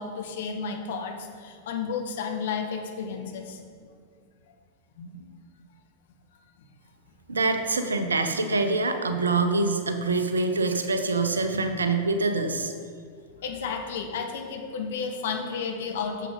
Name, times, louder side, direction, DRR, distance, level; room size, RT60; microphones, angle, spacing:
voice 1, 0.0-3.6 5.0-5.3 13.4-16.3, left 5 dB, 55° left, 3 dB, 1.0 m, -32 dB
voice 2, 7.3-12.7, right 3 dB, 75° right, 8 dB, 0.7 m, -25 dB
9.3 x 7.4 x 3.7 m, 2.1 s
figure-of-eight pair, 90°, 0 cm